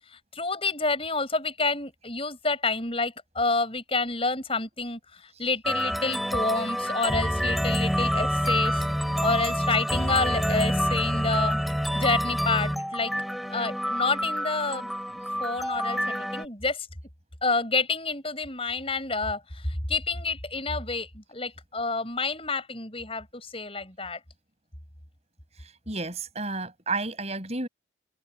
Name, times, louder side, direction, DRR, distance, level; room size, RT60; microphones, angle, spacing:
voice 1, 0.1-8.8 9.2-11.6 11.9-13.1 13.5-16.9 17.4-24.2, left 3 dB, 30° left, 7.9 m, -29 dB
sound 1, 5.6-16.4, equal, ahead, 5.7 m, -27 dB
voice 2, 25.9-27.7, right 3 dB, 35° right, 7.7 m, -31 dB
head